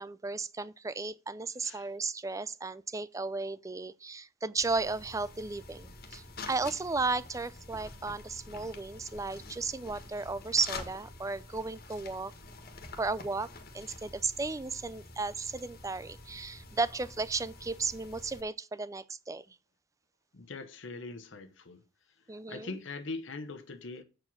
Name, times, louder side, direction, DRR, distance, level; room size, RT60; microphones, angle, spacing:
voice 1, 0.0-12.3 13.0-13.5 13.7-19.6 22.3-22.7, right 3 dB, 15° right, 0.4 m, -34 dB
sound 1, 4.6-18.4, left 3 dB, 50° left, 1.6 m, -47 dB
voice 2, 20.3-21.8 22.5-24.0, left 3 dB, 75° left, 1.0 m, -41 dB
7.7 x 4.8 x 7.2 m
head